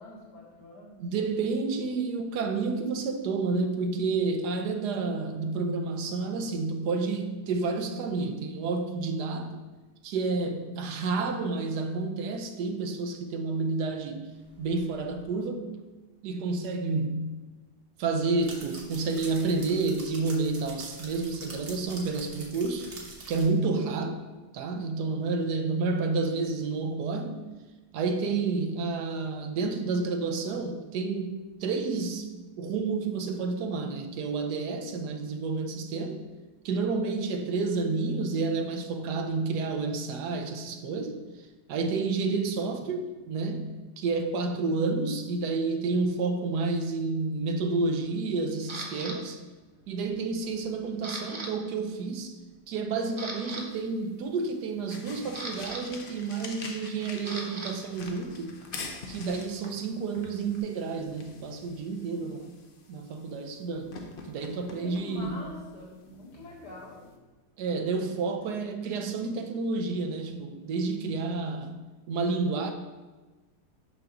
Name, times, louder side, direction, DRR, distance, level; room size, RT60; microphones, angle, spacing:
voice 1, 0.0-1.0 64.8-67.1 67.9-68.1 68.4-68.6, left 2 dB, 70° left, -5 dB, 2.4 m, -44 dB
voice 2, 1.0-9.6 10.0-14.3 14.6-15.6 16.2-17.4 18.0-22.9 23.3-24.2 24.5-27.4 27.9-32.3 32.6-36.2 36.6-41.2 41.7-49.4 49.9-52.3 52.7-58.5 59.1-62.5 62.9-64.0 64.3-65.4 67.6-71.8 72.1-72.7, right 4 dB, 80° right, 5 dB, 1.3 m, -30 dB
sound 1, 14.4-15.2 18.4-23.4, right 2 dB, 65° right, 1.8 m, -45 dB
Camera, 48.7-49.2 49.8-50.1 50.4-51.5 51.8-52.0 52.5-52.6 53.0-53.6 54.8-57.7 58.0-60.6, right 2 dB, 30° right, 0.5 m, -40 dB
sound 2, 53.6-67.2, left 4 dB, 55° left, 0.6 m, -46 dB
5.9 x 3.8 x 5.9 m, 1.2 s
omnidirectional pair, 1.8 m